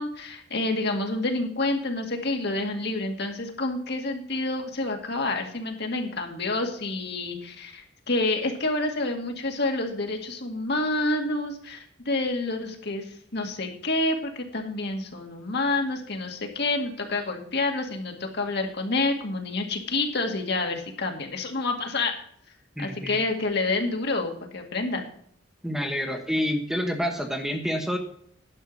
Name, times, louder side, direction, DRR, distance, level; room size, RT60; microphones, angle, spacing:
voice 1, 0.0-22.2 22.8-25.0, left 2 dB, 60° left, 3 dB, 2.1 m, -28 dB
voice 2, 22.8-23.2 25.6-28.0, equal, ahead, 3 dB, 1.3 m, -28 dB
11.0 x 5.9 x 7.1 m, 0.62 s
head